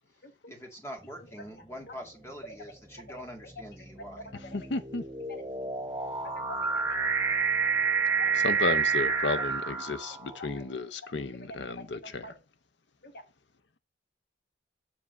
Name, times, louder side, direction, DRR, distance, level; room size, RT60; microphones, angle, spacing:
voice 1, 0.5-4.3, equal, 15° left, 2.0 m, -44 dB
sound 1, 1.1-1.5 2.3-10.5, right 6 dB, 15° right, 0.9 m, -30 dB
voice 2, 4.5-5.0 8.3-12.3, left 3 dB, 70° left, 0.7 m, -33 dB
voice 3, 6.2-7.0 8.2-8.3 10.4-10.6 11.7-11.9 12.2-12.3 13.0-13.2, left 1 dB, 55° left, 1.2 m, -45 dB
7.2 x 3.6 x 6.0 m
head